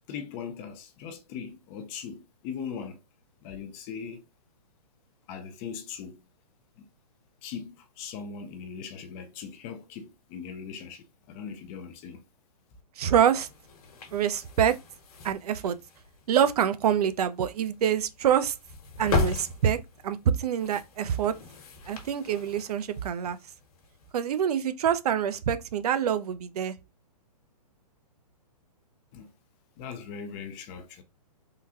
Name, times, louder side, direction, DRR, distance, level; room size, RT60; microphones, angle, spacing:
voice 1, 0.1-3.0 3.4-4.2 5.3-6.2 6.8-6.9 7.4-12.2 29.1-29.3 29.8-31.0, left 6 dB, 20° left, 0.3 m, -40 dB
sound 1, 13.0-24.1, left 3 dB, 60° left, 1.2 m, -37 dB
voice 2, 13.0-13.5 14.1-14.8 15.2-15.8 16.3-18.6 19.0-21.4 21.9-23.4 24.1-26.7, right 9 dB, 70° right, 0.5 m, -26 dB
3.6 x 2.2 x 2.7 m
hypercardioid pair, 135°, 21 cm